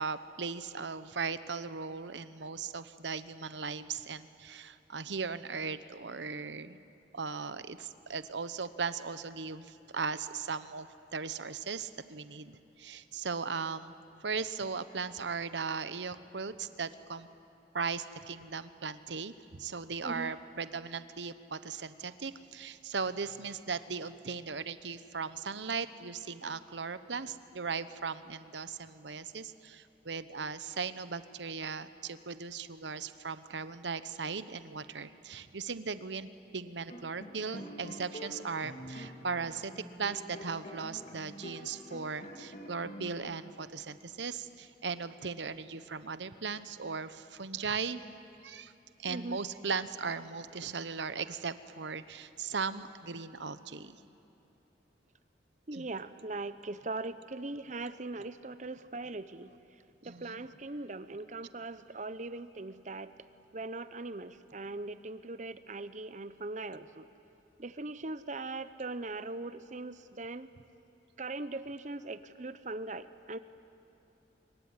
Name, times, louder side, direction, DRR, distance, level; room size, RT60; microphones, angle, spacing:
voice 1, 0.0-6.8 7.1-13.9 14.2-17.3 17.7-48.1 48.4-48.7 49.0-54.0 55.7-55.9 60.0-60.4, right 5 dB, 80° right, 13 dB, 1.0 m, -38 dB
sound 1, 36.9-41.6 41.9-43.1, equal, 40° left, 3.4 m, -45 dB
voice 2, 49.1-49.4 55.7-59.5 60.0-63.1 63.5-67.0 67.6-70.5 71.2-73.4, right 2 dB, 40° right, 13 dB, 0.9 m, -40 dB
26.0 x 23.5 x 9.7 m, 2.9 s
head